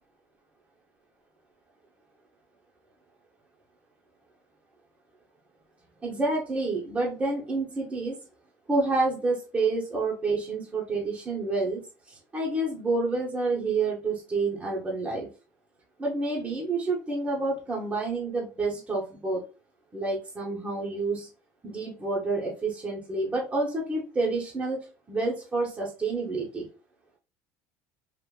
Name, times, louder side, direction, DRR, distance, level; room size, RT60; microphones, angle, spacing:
voice 1, 6.0-8.2 8.7-11.8 12.1-15.3 16.0-19.4 19.9-21.3 21.6-26.7, right 3 dB, 20° right, -3 dB, 0.8 m, -29 dB
3.6 x 2.4 x 2.3 m, 0.33 s
cardioid pair, 125°, 8 cm